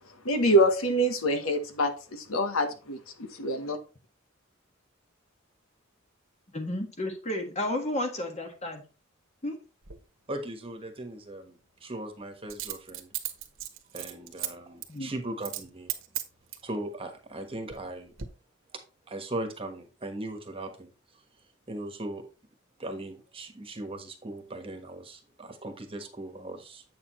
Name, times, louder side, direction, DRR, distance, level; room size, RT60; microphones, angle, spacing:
voice 1, 0.2-3.0 3.4-3.8, right 1 dB, 85° left, 1.1 m, -25 dB
voice 2, 6.5-8.8 9.4-9.6 14.9-15.1, left 1 dB, 35° left, 1.6 m, -32 dB
Coin (dropping), 9.8-10.0 12.5-14.5 14.8-15.0 15.4-15.6 15.9-16.7 17.3-17.9 18.2-18.3, right 12 dB, 70° right, 1.2 m, -35 dB
voice 3, 10.3-11.6 11.8-13.1 13.9-15.9 16.6-18.1 19.1-20.9 21.7-22.3 22.8-26.8, right 1 dB, 25° right, 1.3 m, -38 dB
8.4 x 6.7 x 3.1 m
head